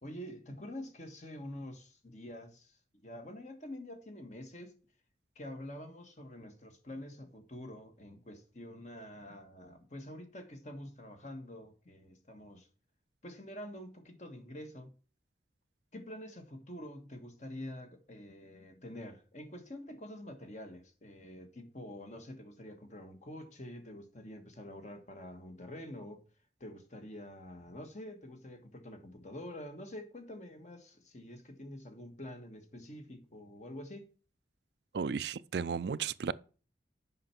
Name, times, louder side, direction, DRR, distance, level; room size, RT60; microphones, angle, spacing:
voice 1, 0.0-2.8 3.0-4.8 5.3-12.7 13.2-14.9 15.9-26.2 26.6-34.1, left 1 dB, 40° left, 1.5 m, -47 dB
voice 2, 34.9-36.3, right 6 dB, 70° right, 0.4 m, -34 dB
7.7 x 5.6 x 5.8 m
head